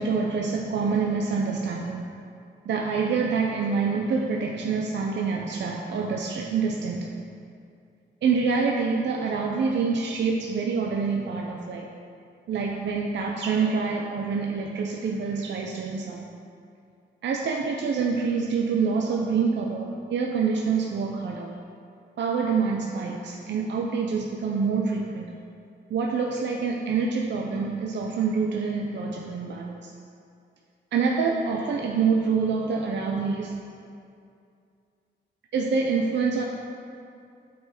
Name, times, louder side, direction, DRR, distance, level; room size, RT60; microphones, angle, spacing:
voice 1, 0.0-2.0 2.7-7.0 8.2-11.9 12.5-16.3 17.2-21.5 22.2-25.3 25.9-29.9 30.9-33.6 35.5-36.4, right 5 dB, 75° right, 0 dB, 0.5 m, -26 dB
8.5 x 3.9 x 4.3 m, 2.4 s
cardioid pair, 90°, 19 cm